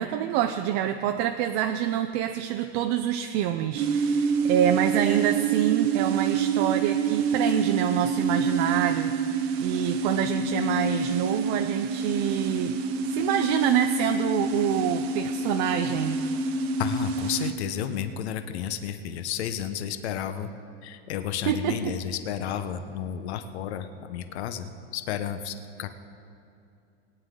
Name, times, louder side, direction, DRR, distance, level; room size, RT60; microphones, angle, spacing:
voice 1, 0.0-9.1 9.6-12.8 13.1-16.2 21.5-21.9, right 10 dB, 35° right, 7 dB, 0.4 m, -26 dB
sound 1, 3.8-17.5, right 4 dB, 65° right, 1.0 m, -27 dB
voice 2, 16.8-20.5 20.8-25.9, left 9 dB, 75° left, 9 dB, 1.0 m, -32 dB
21.5 x 9.6 x 3.8 m, 2.6 s
supercardioid pair, 155°, 33 cm